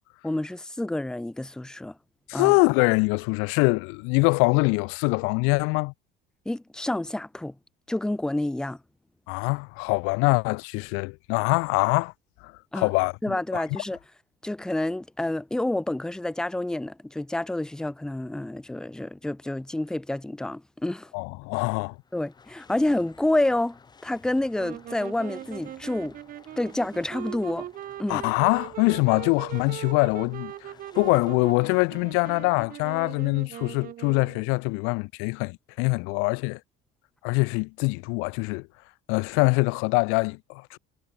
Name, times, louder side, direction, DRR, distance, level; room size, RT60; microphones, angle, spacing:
voice 1, 0.2-2.0 2.3-2.5 6.5-7.5 7.9-8.8 12.7-12.9 13.2-14.0 14.4-21.1 22.1-26.2 26.6-27.7 28.0-28.2, left 1 dB, 5° left, 0.8 m, -28 dB
voice 2, 2.3-5.9 9.3-12.1 12.4-13.8 21.1-22.0 28.1-36.6 37.2-38.7 39.1-40.8, left 31 dB, 85° left, 0.4 m, -24 dB
sound 1, 21.9-32.7, left 5 dB, 20° left, 5.4 m, -55 dB
sound 2, 24.5-34.5, right 12 dB, 45° right, 2.1 m, -40 dB
cardioid pair, 165°, 21 cm